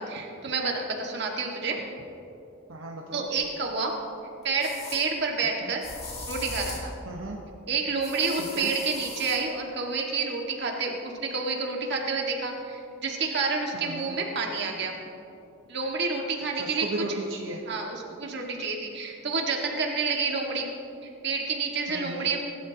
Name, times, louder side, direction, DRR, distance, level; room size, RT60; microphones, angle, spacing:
voice 1, 0.0-1.8 3.1-3.9 4.4-5.8 6.3-6.9 7.7-15.0 15.7-16.9 17.7-20.7 21.2-22.5, right 4 dB, 55° right, 0 dB, 1.9 m, -29 dB
voice 2, 2.7-3.2 5.6-5.7 7.1-7.4 8.3-8.7 13.7-14.1 16.5-17.6 21.9-22.3, right 2 dB, 70° right, -1 dB, 1.1 m, -35 dB
sound 1, 3.4-3.5 4.6-5.0 5.8-6.9 8.0-9.4, left 2 dB, 30° left, 2.4 m, -39 dB
22.5 x 12.0 x 3.0 m, 2.8 s
head